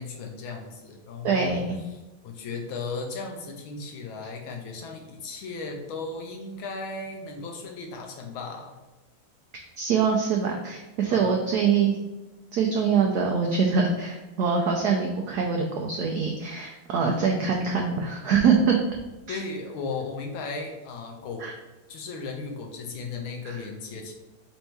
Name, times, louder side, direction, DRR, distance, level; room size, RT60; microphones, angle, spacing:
voice 1, 0.0-1.7 2.2-8.7 11.1-11.3 19.3-21.5 21.9-24.1, left 4 dB, 75° left, 2 dB, 1.5 m, -36 dB
voice 2, 1.2-1.8 9.8-12.0 12.5-18.8 19.3-19.4 21.4-21.5 23.4-23.6, right 5 dB, 85° right, 1 dB, 0.8 m, -24 dB
4.4 x 2.7 x 4.5 m, 1.1 s
omnidirectional pair, 2.3 m